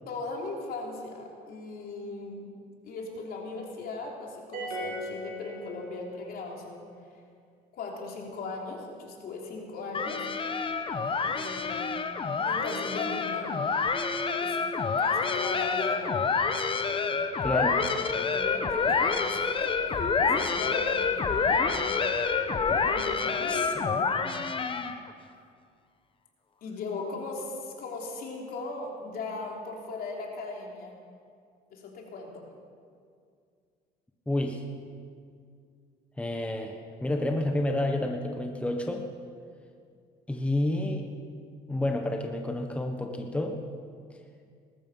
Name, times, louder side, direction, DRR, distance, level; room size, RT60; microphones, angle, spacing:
voice 1, 0.1-2.4 2.8-6.9 7.1-7.2 7.7-10.3 11.3-12.0 12.4-13.5 14.4-14.6 15.0-16.3 17.4-22.0 22.7-24.4 26.6-31.0 31.7-32.5, left 3 dB, 65° left, 0 dB, 3.3 m, -38 dB
sound 1, 4.5-6.2, equal, 55° right, 5.3 m, -37 dB
sound 2, 9.9-25.1, left 5 dB, 30° left, 1.0 m, -28 dB
voice 2, 17.4-17.8 23.5-23.7 34.3-34.6 36.2-39.0 40.3-41.1 41.7-43.6, left 1 dB, 5° left, 3 dB, 1.2 m, -29 dB
20.0 x 13.0 x 5.5 m, 2.2 s
cardioid pair, 110°, 17 cm